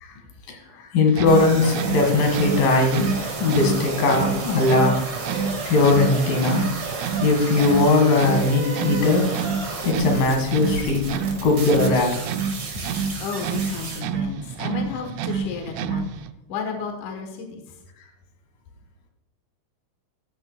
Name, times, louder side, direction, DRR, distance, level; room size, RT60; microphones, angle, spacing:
voice 1, 0.5-3.1 3.4-5.1 5.7-6.7 7.2-9.3 9.9-12.2, left 3 dB, 90° left, 2 dB, 3.7 m, -20 dB
sound 1, 1.1-16.3, right 6 dB, 85° right, 1.6 m, -29 dB
sound 2, 1.3-14.0, right 3 dB, 45° right, 2.6 m, -32 dB
voice 2, 13.2-16.2 16.5-17.6, left 5 dB, 70° left, 4 dB, 2.7 m, -32 dB
13.5 x 9.9 x 2.3 m, 0.94 s
omnidirectional pair, 3.8 m